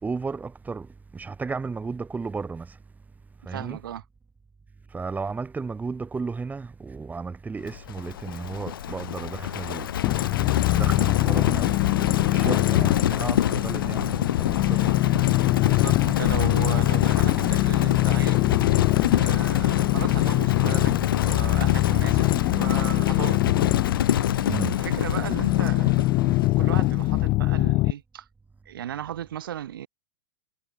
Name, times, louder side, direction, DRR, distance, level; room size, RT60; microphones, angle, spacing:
voice 1, 0.0-2.8 3.5-3.8 4.9-9.9 10.7-11.8 12.3-15.6 24.4-24.8, right 4 dB, 15° right, 5.3 m, -34 dB
voice 2, 3.5-4.0 12.4-12.6 15.6-18.5 19.1-23.4 24.8-26.0 26.6-28.3 28.7-29.9, right 11 dB, 65° right, 7.8 m, -36 dB
Livestock farm animals working animals, 7.7-27.3, left 11 dB, 65° left, 3.7 m, -27 dB
sound 1, 10.0-27.9, left 19 dB, 40° left, 3.2 m, -23 dB
figure-of-eight pair, 95°, 12 cm